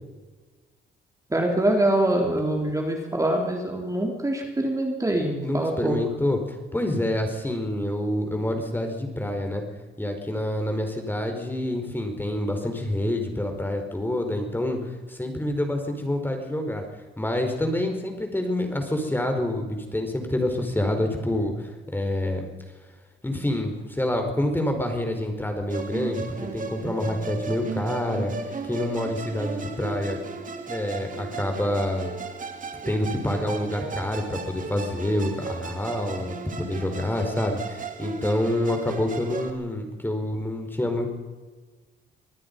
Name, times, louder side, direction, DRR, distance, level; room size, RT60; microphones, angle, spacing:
voice 1, 1.3-6.0, right 1 dB, 15° right, 1 dB, 3.9 m, -24 dB
voice 2, 5.4-9.6 10.0-14.8 15.1-16.8 17.2-22.5 23.2-28.3 28.6-30.2 30.7-32.1 32.9-41.1, left 1 dB, 10° left, 4 dB, 4.8 m, -27 dB
Musical instrument, 25.7-39.5, right 5 dB, 40° right, 2.8 m, -35 dB
25.5 x 19.0 x 5.5 m, 1.3 s
cardioid pair, 90°, 20 cm